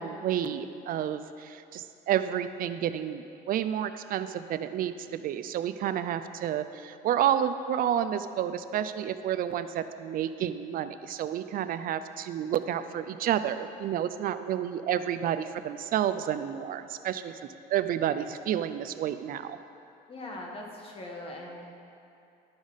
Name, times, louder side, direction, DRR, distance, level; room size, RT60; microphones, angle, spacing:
voice 1, 0.0-17.3 17.7-19.6, right 10 dB, 60° right, 11 dB, 0.4 m, -30 dB
voice 2, 20.1-21.7, left 1 dB, 35° left, 0 dB, 1.4 m, -41 dB
11.0 x 6.1 x 4.0 m, 2.6 s
cardioid pair, 110°, 17 cm